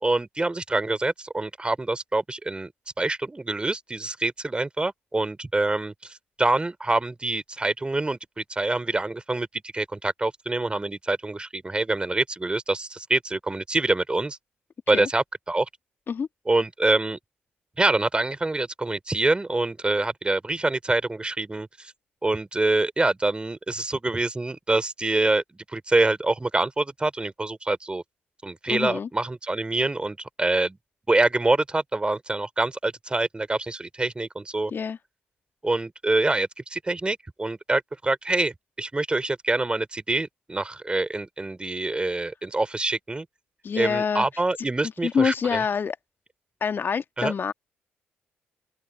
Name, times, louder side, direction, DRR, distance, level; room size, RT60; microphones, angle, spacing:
voice 1, 0.0-2.7 3.0-9.5 9.7-14.4 14.9-15.7 16.5-17.2 17.8-21.9 22.2-25.4 25.7-28.0 28.4-30.8 31.1-34.7 35.6-43.3 43.8-45.6 47.2-47.3, right 2 dB, 20° right, 3.3 m, -25 dB
voice 2, 28.7-29.1 34.7-35.0 43.6-44.3 44.6-44.7 45.0-46.0 46.6-47.5, left 6 dB, 40° left, 1.9 m, -26 dB
open air
figure-of-eight pair, 45°, 5 cm